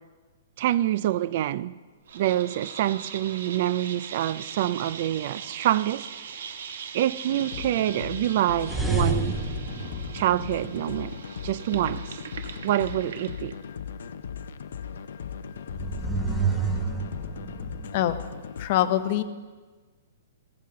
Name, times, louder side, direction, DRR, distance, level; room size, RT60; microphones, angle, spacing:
voice 1, 0.6-1.8 2.1-6.1 6.9-9.4 10.1-11.2 11.4-12.0 12.6-13.5, right 13 dB, 45° right, 0.3 m, -26 dB
sound 1, 2.1-13.6, right 7 dB, 70° right, 1.0 m, -41 dB
sound 2, 7.3-18.7, left 7 dB, 75° left, 0.6 m, -38 dB
sound 3, 8.6-11.1 15.6-17.9, right 4 dB, 5° right, 0.9 m, -29 dB
voice 2, 18.6-19.2, left 12 dB, 40° left, 0.7 m, -23 dB
15.0 x 14.0 x 3.8 m
hypercardioid pair, 165°, 0 cm